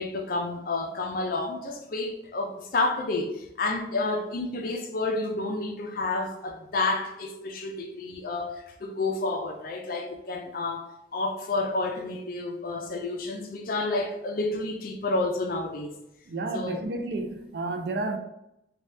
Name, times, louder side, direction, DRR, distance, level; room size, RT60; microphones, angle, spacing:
voice 1, 0.0-15.9 16.5-16.8, left 2 dB, 55° left, 0.5 m, -30 dB
voice 2, 16.3-18.2, right 2 dB, 65° right, 0.4 m, -31 dB
2.7 x 2.3 x 3.3 m
head